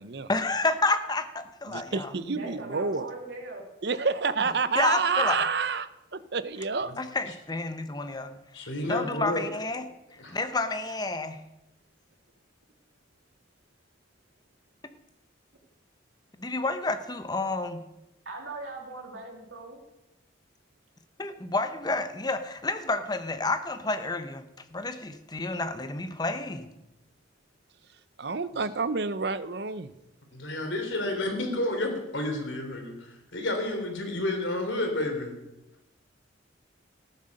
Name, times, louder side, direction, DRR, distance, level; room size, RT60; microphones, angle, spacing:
voice 1, 0.3-2.1 4.8-5.4 7.0-9.9 10.3-11.4 16.4-17.8 21.2-26.7, left 3 dB, 20° left, 9 dB, 0.8 m, -30 dB
voice 2, 1.7-3.1 3.8-6.9 28.2-29.9, right 4 dB, 60° right, 14 dB, 0.7 m, -29 dB
voice 3, 2.3-3.6 4.0-4.2 18.2-19.8, right 2 dB, 80° right, 0 dB, 2.8 m, -39 dB
voice 4, 8.5-9.5 10.2-10.4 30.3-35.3, left 1 dB, 75° left, 4 dB, 3.2 m, -30 dB
14.0 x 9.7 x 6.5 m, 0.95 s
head